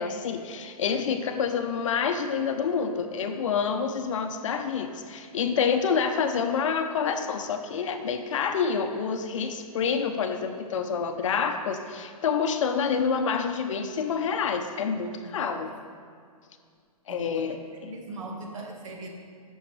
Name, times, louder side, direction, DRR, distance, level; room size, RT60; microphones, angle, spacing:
voice 1, 0.0-15.7 17.1-17.9, left 6 dB, 55° left, 6 dB, 0.8 m, -28 dB
voice 2, 15.2-15.7 17.1-17.5 17.9-19.1, right 3 dB, 55° right, 1 dB, 1.6 m, -40 dB
14.0 x 6.3 x 3.3 m, 2.2 s
hypercardioid pair, 155°, 19 cm